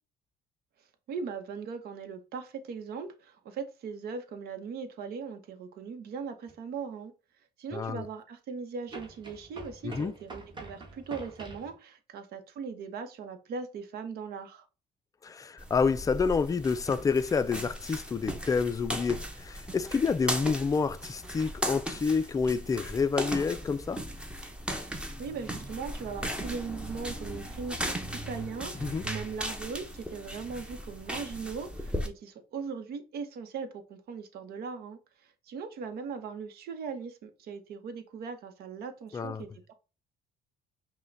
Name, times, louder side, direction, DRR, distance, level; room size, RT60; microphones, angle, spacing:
voice 1, 1.1-7.1 7.6-14.6 25.2-39.5, right 5 dB, 65° right, 0.9 m, -39 dB
sound 1, 6.5-6.6 8.9-11.7, right 2 dB, 25° right, 1.5 m, -45 dB
voice 2, 7.7-8.0 9.8-10.1 15.2-24.0 28.8-29.0 39.1-39.4, left 5 dB, 20° left, 0.4 m, -28 dB
sound 2, 15.6-32.1, equal, 5° right, 0.7 m, -37 dB
5.5 x 2.2 x 3.9 m
cardioid pair, 110°, 17 cm